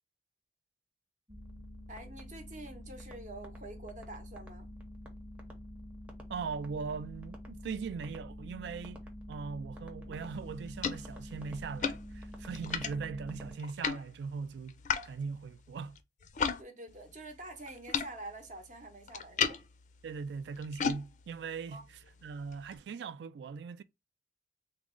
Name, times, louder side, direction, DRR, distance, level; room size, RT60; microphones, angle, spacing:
sound 1, 1.3-13.5, equal, 10° right, 0.7 m, -47 dB
voice 1, 1.9-4.7 16.6-19.6 21.7-21.8, right 2 dB, 45° right, 0.8 m, -47 dB
voice 2, 6.3-9.0 9.3-14.8 15.0-16.0 20.0-21.8 22.2-23.8, right 5 dB, 70° right, 0.3 m, -40 dB
sound 2, 10.2-16.6 16.9-22.8, left 6 dB, 45° left, 0.4 m, -38 dB
3.6 x 2.0 x 3.6 m
head